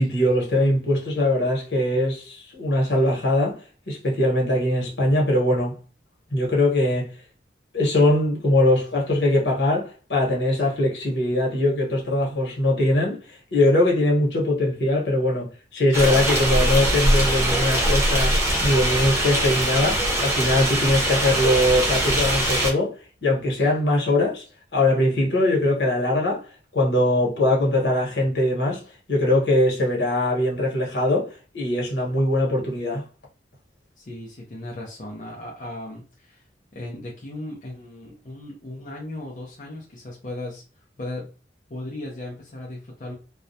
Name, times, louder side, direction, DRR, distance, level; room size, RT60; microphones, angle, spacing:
voice 1, 0.0-3.6 3.9-5.8 6.3-7.1 7.7-13.2 13.5-22.9 23.2-24.4 24.7-26.4 26.7-28.8 29.1-31.3 31.5-33.0, left 1 dB, 80° left, 1.1 m, -21 dB
sound 1, 15.9-22.7, right 1 dB, 15° right, 0.7 m, -22 dB
voice 2, 34.0-36.4 36.7-41.3 41.7-43.1, left 1 dB, 45° left, 0.5 m, -36 dB
2.3 x 2.1 x 2.6 m
head